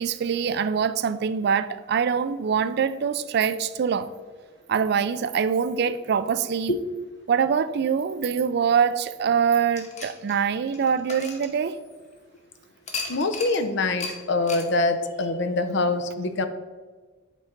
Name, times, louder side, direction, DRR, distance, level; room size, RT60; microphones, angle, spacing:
voice 1, 0.0-4.1 4.7-6.7 7.3-11.8, right 7 dB, 55° right, 14 dB, 0.3 m, -24 dB
sound 1, 9.7-12.1 12.9-13.6 14.0-14.2 14.5-14.7, left 4 dB, 35° left, 0.9 m, -36 dB
voice 2, 13.1-16.5, left 2 dB, 60° left, 9 dB, 0.6 m, -24 dB
8.0 x 3.8 x 4.4 m, 1.4 s
head